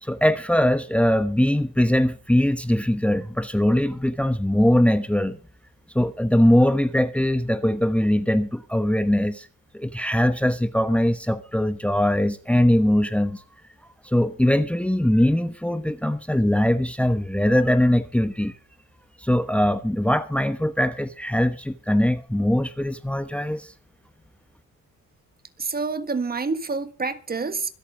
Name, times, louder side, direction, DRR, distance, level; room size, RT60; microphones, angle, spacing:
voice 1, 0.0-5.4 5.9-9.5 9.7-13.4 14.0-18.6 19.2-23.7, left 1 dB, 5° left, 1.1 m, -21 dB
voice 2, 25.6-27.7, right 4 dB, 30° right, 1.5 m, -27 dB
25.0 x 8.5 x 3.8 m
cardioid pair, 90°, 30 cm